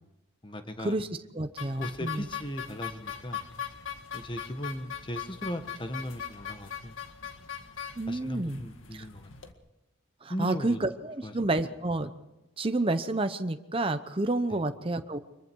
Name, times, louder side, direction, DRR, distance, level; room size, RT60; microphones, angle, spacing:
voice 1, 0.4-0.9 1.8-3.4 4.1-6.9 8.1-9.3 10.3-10.8 11.2-11.3 14.5-14.6, equal, 25° left, 8 dB, 1.5 m, -37 dB
voice 2, 1.3-2.3 8.0-8.6 8.9-9.1 10.2-12.1 12.6-15.2, right 2 dB, 30° right, 8 dB, 0.8 m, -29 dB
sound 1, 1.6-9.5, left 8 dB, 85° left, 1.9 m, -40 dB
24.5 x 22.5 x 4.7 m, 0.98 s
head